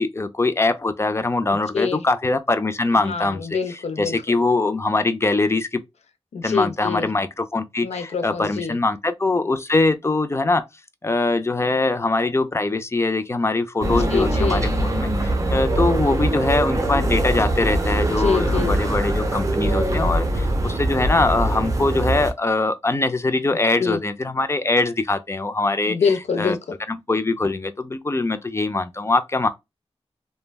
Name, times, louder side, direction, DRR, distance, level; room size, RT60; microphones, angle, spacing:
voice 1, 0.0-3.4 4.0-5.8 6.4-10.7 11.0-26.0 26.4-26.5 26.9-29.5, left 2 dB, 25° left, 0.4 m, -22 dB
voice 2, 1.5-2.0 2.9-4.2 6.3-7.1 7.8-8.8 13.8-14.7 18.2-18.7 23.8-24.0 25.9-26.7, left 5 dB, 85° left, 0.5 m, -25 dB
sound 1, 13.8-22.3, right 1 dB, 30° right, 0.7 m, -22 dB
3.2 x 2.1 x 2.2 m
wide cardioid pair, 85°, 11 cm